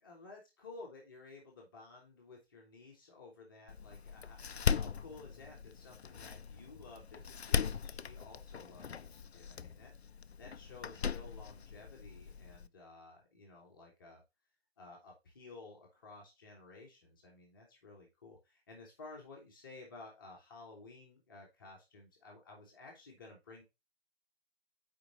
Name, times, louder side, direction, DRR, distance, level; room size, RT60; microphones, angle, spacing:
voice 1, 0.0-4.4 4.8-9.9 10.4-14.2 14.8-23.6, left 3 dB, 20° left, -1 dB, 1.3 m, -54 dB
Door, 3.7-12.7, left 6 dB, 85° left, 0.5 m, -39 dB
8.4 x 4.6 x 3.1 m, 0.24 s
figure-of-eight pair, 155°, 31 cm